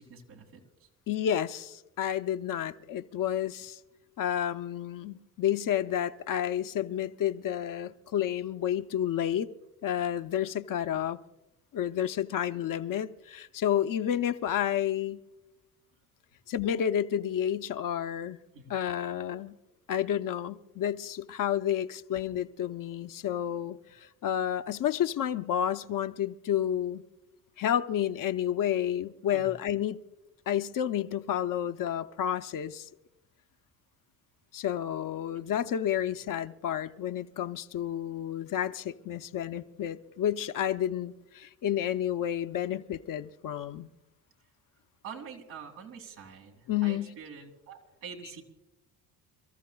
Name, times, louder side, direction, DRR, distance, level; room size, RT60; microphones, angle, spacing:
voice 1, 0.0-0.9 18.5-18.7 29.3-29.5 45.0-48.4, right 6 dB, 85° right, 2.5 m, -46 dB
voice 2, 1.1-3.8 4.2-9.5 9.8-11.2 11.7-15.2 16.5-18.4 18.7-19.5 19.9-27.0 27.6-30.0 30.5-32.9 34.5-43.9 46.7-47.1, left 10 dB, 50° left, 0.7 m, -30 dB
28.5 x 14.0 x 2.3 m
supercardioid pair, 70°, 43 cm